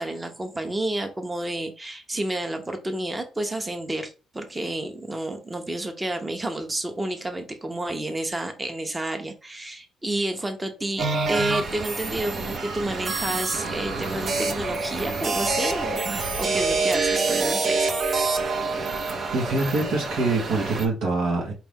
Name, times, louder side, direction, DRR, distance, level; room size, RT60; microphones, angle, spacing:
voice 1, 0.0-17.9, right 1 dB, 15° right, 6 dB, 0.9 m, -30 dB
sound 1, 11.0-20.9, right 3 dB, 55° right, 0.9 m, -26 dB
voice 2, 19.3-21.5, right 3 dB, 85° right, -1 dB, 1.3 m, -24 dB
4.6 x 2.5 x 3.5 m, 0.32 s
cardioid pair, 90°, 0 cm